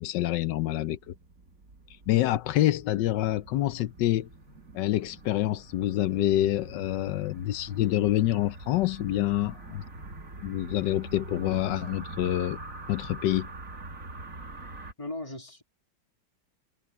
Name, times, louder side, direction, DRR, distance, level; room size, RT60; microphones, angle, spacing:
voice 1, 0.0-1.1 2.1-4.3 4.7-9.8 10.4-12.6 12.9-13.5, left 14 dB, 70° left, 1.2 m, -27 dB
sound 1, 0.8-14.9, right 2 dB, 45° right, 3.0 m, -44 dB
voice 2, 15.0-15.6, left 2 dB, 20° left, 1.8 m, -37 dB
omnidirectional pair, 2.1 m